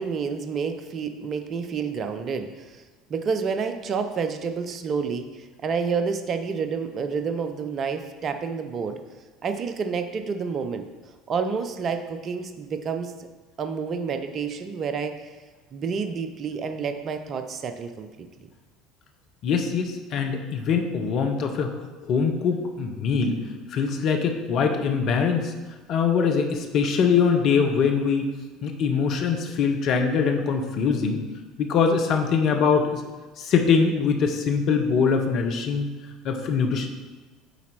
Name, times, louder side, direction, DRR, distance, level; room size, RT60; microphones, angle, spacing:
voice 1, 0.0-2.8 3.1-9.0 9.4-10.9 11.3-13.1 13.6-15.3 15.7-18.5, right 5 dB, 40° right, 7 dB, 0.6 m, -29 dB
voice 2, 19.4-21.7 22.0-23.4 23.7-25.5 25.9-28.3 28.6-31.2 31.6-33.0 33.4-35.9 36.2-36.9, left 6 dB, 50° left, 4 dB, 0.9 m, -23 dB
8.1 x 4.2 x 4.3 m, 1.3 s
figure-of-eight pair, 65°, 0 cm